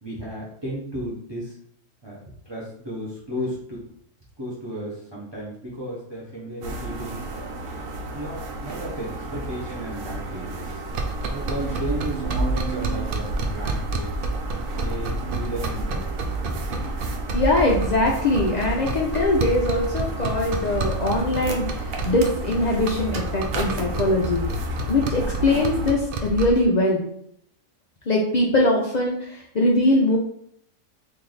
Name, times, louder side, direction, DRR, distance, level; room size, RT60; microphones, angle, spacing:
voice 1, 0.0-1.5 2.0-2.2 2.5-3.8 4.4-7.5 8.1-10.8 11.3-14.1 14.7-16.0, right 1 dB, 25° right, -5 dB, 0.7 m, -34 dB
sound 1, 6.6-25.9, right 1 dB, 80° right, 1.1 m, -33 dB
sound 2, 10.9-26.6, right 2 dB, 65° right, 0.5 m, -29 dB
voice 2, 17.3-24.4 24.9-27.0 28.1-30.2, left 1 dB, 80° left, -1 dB, 0.3 m, -22 dB
3.2 x 2.6 x 3.8 m, 0.67 s
omnidirectional pair, 1.4 m